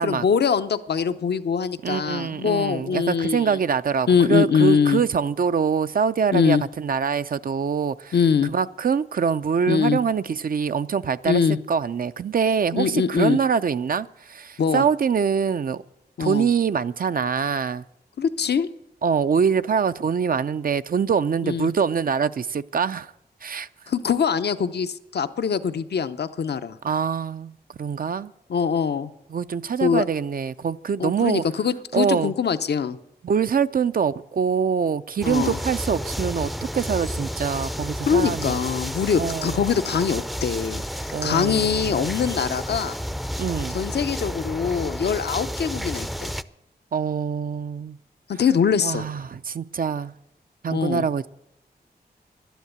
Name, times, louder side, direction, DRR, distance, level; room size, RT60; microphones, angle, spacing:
voice 1, 0.0-3.6 4.1-5.0 6.3-6.6 8.1-8.5 9.7-10.0 11.3-11.6 12.7-13.4 14.6-14.8 16.2-16.5 18.2-18.7 21.4-21.7 23.9-26.8 28.5-29.1 29.8-30.0 31.0-33.0 35.2-35.6 38.1-40.8 41.2-43.0 43.7-46.3 48.3-49.0 50.7-51.1, left 6 dB, 75° left, 0.7 m, -23 dB
voice 2, 1.8-8.1 8.5-11.4 11.7-15.8 16.2-17.8 19.0-23.1 23.4-23.7 26.8-28.3 29.3-31.4 31.9-32.3 33.2-38.6 39.2-39.6 41.1-42.1 43.4-43.8 46.9-48.0 48.8-50.1 50.6-51.3, right 6 dB, 55° right, 0.5 m, -24 dB
sound 1, 35.2-46.4, equal, ahead, 0.5 m, -31 dB
11.5 x 10.0 x 8.0 m
cardioid pair, 55°, 17 cm